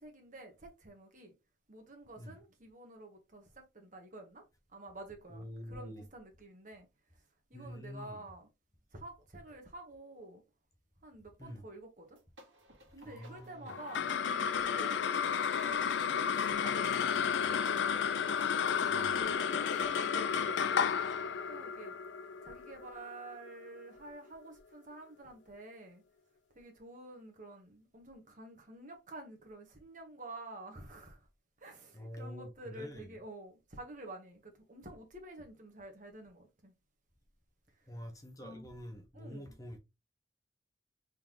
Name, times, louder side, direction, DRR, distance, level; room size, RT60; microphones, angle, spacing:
voice 1, 0.0-1.3 1.7-4.4 4.7-6.9 7.5-8.5 8.9-10.4 11.0-12.2 12.9-15.0 16.4-17.1 18.1-20.9 21.5-22.0 22.4-26.0 26.5-31.3 31.6-36.7 38.4-38.7 39.1-39.6, right 2 dB, 45° right, 1.2 m, -50 dB
voice 2, 5.3-6.0 7.5-8.2 11.4-11.6 13.0-13.7 18.9-19.2 31.9-33.1 37.9-39.8, equal, 20° left, 0.8 m, -47 dB
sound 1, 12.0-22.4, equal, 80° right, 1.5 m, -59 dB
sound 2, 13.7-24.3, left 7 dB, 75° left, 0.4 m, -32 dB
3.7 x 3.3 x 2.9 m
head